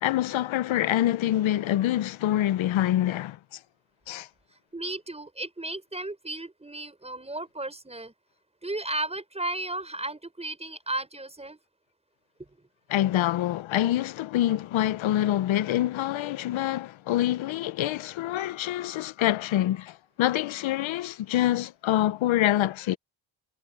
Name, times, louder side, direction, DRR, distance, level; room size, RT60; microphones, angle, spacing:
voice 1, 0.0-3.6 4.1-4.3 12.9-23.0, left 13 dB, 75° left, 0.9 m, -26 dB
voice 2, 4.7-8.1 8.6-11.6, right 2 dB, 15° right, 6.0 m, -34 dB
cardioid pair, 80°, 47 cm